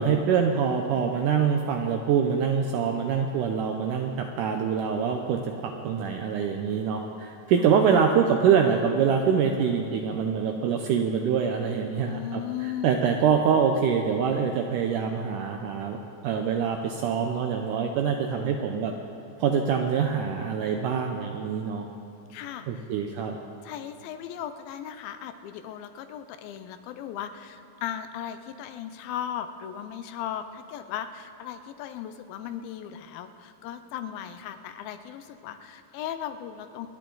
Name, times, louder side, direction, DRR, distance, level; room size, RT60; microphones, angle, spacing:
voice 1, 0.0-12.4 12.8-18.9 19.4-21.9 22.7-23.4, right 7 dB, 80° right, 4 dB, 1.9 m, -25 dB
voice 2, 11.9-12.9 22.3-22.9 23.6-36.9, left 10 dB, 80° left, 9 dB, 2.4 m, -37 dB
26.5 x 10.0 x 3.9 m, 2.7 s
omnidirectional pair, 4.3 m